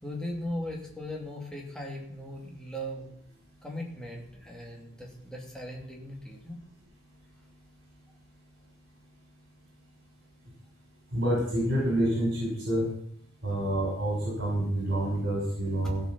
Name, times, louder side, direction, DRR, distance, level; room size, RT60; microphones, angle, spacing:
voice 1, 0.0-3.1 3.6-6.6 15.8-15.9, left 1 dB, 5° left, -1 dB, 2.5 m, -38 dB
voice 2, 11.1-12.8 13.4-16.0, right 1 dB, 50° right, -4 dB, 5.5 m, -28 dB
16.0 x 6.4 x 6.1 m, 0.72 s
head